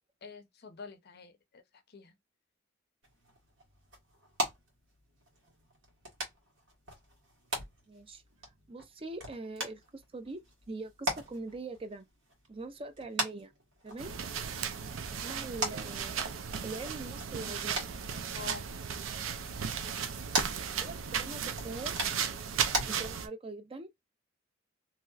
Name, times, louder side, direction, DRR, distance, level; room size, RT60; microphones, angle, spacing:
voice 1, 0.2-1.6 1.9-2.1 18.3-18.7, left 4 dB, 55° left, 0.6 m, -46 dB
sound 1, 3.0-22.9, right 1 dB, 70° right, 1.4 m, -41 dB
voice 2, 7.9-8.2 8.7-12.0 12.5-13.5 13.8-14.1 15.1-16.3 16.6-17.8 20.8-22.0 22.9-23.9, right 3 dB, 30° right, 0.5 m, -42 dB
sound 2, 14.0-23.3, right 7 dB, 90° right, 0.5 m, -36 dB
3.0 x 2.7 x 2.3 m
head